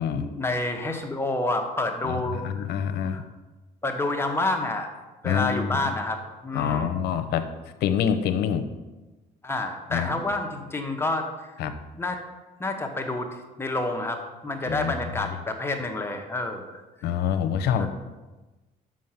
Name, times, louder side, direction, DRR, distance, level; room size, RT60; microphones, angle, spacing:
voice 1, 0.2-2.7 3.1-3.2 3.8-4.9 5.2-7.0 9.4-11.5 11.9-12.2 12.6-16.8 17.8-17.9, left 2 dB, 15° left, 3 dB, 1.0 m, -29 dB
voice 2, 2.0-3.2 5.2-5.9 6.5-7.5 7.8-8.7 9.9-10.1 11.6-11.8 14.6-15.3 17.0-17.9, left 8 dB, 75° left, 10 dB, 0.7 m, -26 dB
6.3 x 5.7 x 5.7 m, 1.2 s
cardioid pair, 110°, 17 cm